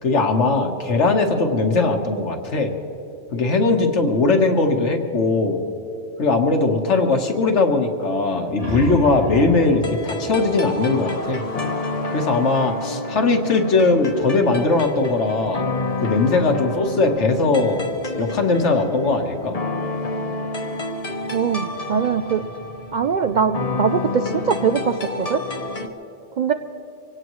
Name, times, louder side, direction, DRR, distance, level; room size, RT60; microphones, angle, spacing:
voice 1, 0.0-2.7 3.3-5.6 6.2-11.4 12.1-15.7 16.0-17.8 18.2-19.6, left 3 dB, 75° left, 4 dB, 1.6 m, -19 dB
sound 1, 8.3-11.7, left 1 dB, 30° right, 2.0 m, -33 dB
sound 2, 9.0-25.9, left 2 dB, 35° left, 0.9 m, -30 dB
voice 2, 21.3-22.4 22.9-25.4 26.4-26.5, right 6 dB, 60° right, 7 dB, 0.5 m, -22 dB
25.0 x 17.0 x 3.1 m, 2.7 s
omnidirectional pair, 1.2 m